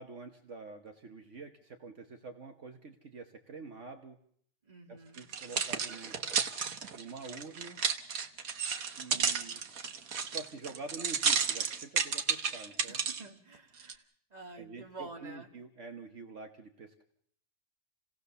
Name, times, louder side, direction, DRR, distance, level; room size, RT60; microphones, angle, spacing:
voice 1, 0.0-4.2 4.9-6.1 6.9-7.8 9.0-9.6 10.3-13.0 14.6-17.0, right 4 dB, 60° right, 5 dB, 1.5 m, -46 dB
voice 2, 4.6-5.2 12.8-15.5, right 3 dB, 30° right, 3 dB, 2.1 m, -49 dB
sound 1, 5.2-13.2 13.8-13.9, right 6 dB, 80° right, 1.6 m, -32 dB
29.0 x 17.5 x 6.8 m, 0.66 s
omnidirectional pair, 1.4 m